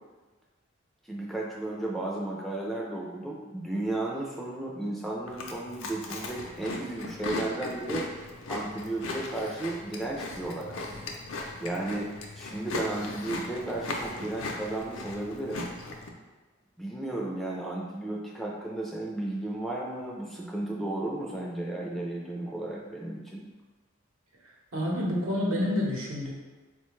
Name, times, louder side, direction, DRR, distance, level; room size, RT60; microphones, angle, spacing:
voice 1, 1.1-8.1 8.5-11.0 11.6-15.6 16.8-23.4, right 2 dB, ahead, -3 dB, 0.3 m, -34 dB
Chewing mastication, 5.3-16.1, left 2 dB, 70° left, 0.5 m, -38 dB
voice 2, 24.7-26.3, left 1 dB, 85° right, -3 dB, 0.8 m, -28 dB
4.1 x 2.2 x 3.0 m, 1.3 s
head